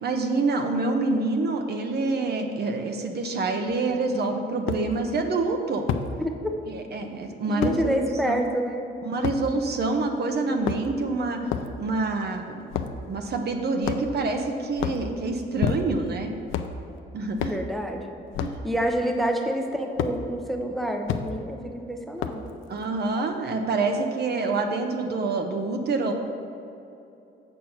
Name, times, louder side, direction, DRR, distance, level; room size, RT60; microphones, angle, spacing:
voice 1, 0.0-5.9 6.7-8.4 9.0-11.4 11.8-12.7 13.1-16.3 17.1-17.6 18.4-18.7 22.7-26.1, right 3 dB, 55° right, 5 dB, 0.9 m, -27 dB
sound 1, 3.7-3.8 4.7-4.8 5.9-6.1 7.6-7.8 9.2-9.4 10.5-11.0 11.5-11.7 12.7-13.0 13.8-14.2 14.7-15.0 15.6-16.1 16.5-16.8 17.4-17.6 18.3-18.6 20.0-20.2 21.1-21.3 22.2-22.5, left 9 dB, 85° left, 0.5 m, -28 dB
voice 2, 7.5-8.9 17.4-18.1 18.6-22.5, right 1 dB, ahead, 3 dB, 0.7 m, -28 dB
7.5 x 4.5 x 6.5 m, 2.8 s
cardioid pair, 90°, 20 cm